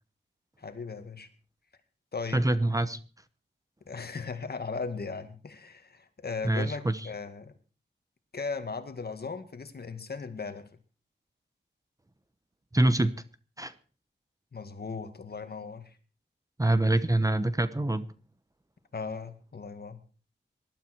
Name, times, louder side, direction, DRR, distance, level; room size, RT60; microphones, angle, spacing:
voice 1, 0.6-1.3 2.1-2.5 3.9-7.5 8.3-10.6 14.5-15.9 18.9-20.0, left 4 dB, 55° left, 2.1 m, -37 dB
voice 2, 2.3-3.0 6.4-7.0 12.7-13.1 13.6-13.7 16.6-18.0, right 1 dB, 15° right, 1.0 m, -25 dB
20.0 x 12.5 x 4.6 m
wide cardioid pair, 85°, 19 cm